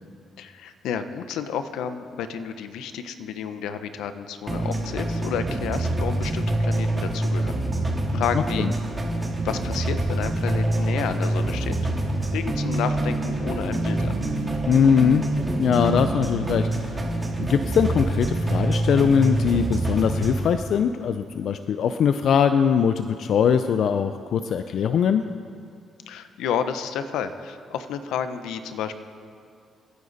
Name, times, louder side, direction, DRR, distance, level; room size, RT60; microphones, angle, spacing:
voice 1, 0.4-7.6 8.1-8.7 9.4-11.8 12.3-14.1 26.1-28.9, left 8 dB, 85° left, 10 dB, 0.8 m, -31 dB
sound 1, 4.5-20.5, right 1 dB, 20° right, 3.0 m, -26 dB
voice 2, 8.1-8.7 14.7-15.2 15.6-17.0 17.4-25.2, left 7 dB, 65° left, 9 dB, 0.5 m, -21 dB
26.5 x 10.0 x 4.1 m, 2.3 s
cardioid pair, 90°, 0 cm